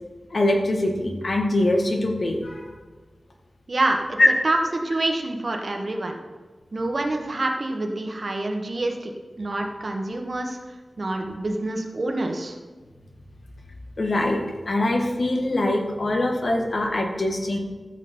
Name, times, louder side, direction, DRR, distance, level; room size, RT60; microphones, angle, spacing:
voice 1, 0.3-2.7 4.2-4.3 14.0-17.6, left 1 dB, 60° left, 2 dB, 1.7 m, -23 dB
voice 2, 3.7-4.2 4.4-6.2 6.7-9.1 9.4-10.6 11.0-12.5, right 2 dB, 55° right, 3 dB, 1.4 m, -26 dB
14.5 x 7.1 x 4.5 m, 1.4 s
wide cardioid pair, 90°, 0 cm